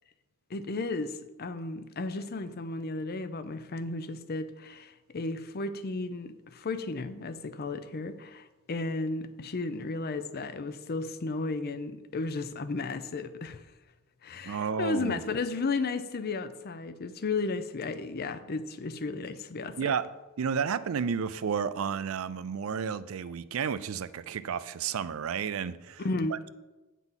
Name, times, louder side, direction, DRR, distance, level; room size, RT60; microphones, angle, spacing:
voice 1, 0.5-13.6 14.2-19.9 26.0-26.4, left 3 dB, 45° left, 11 dB, 0.6 m, -34 dB
voice 2, 14.4-15.2 19.8-20.0 20.4-26.0 26.3-26.5, right 6 dB, 70° right, 15 dB, 0.4 m, -31 dB
9.0 x 4.1 x 7.2 m, 1.1 s
head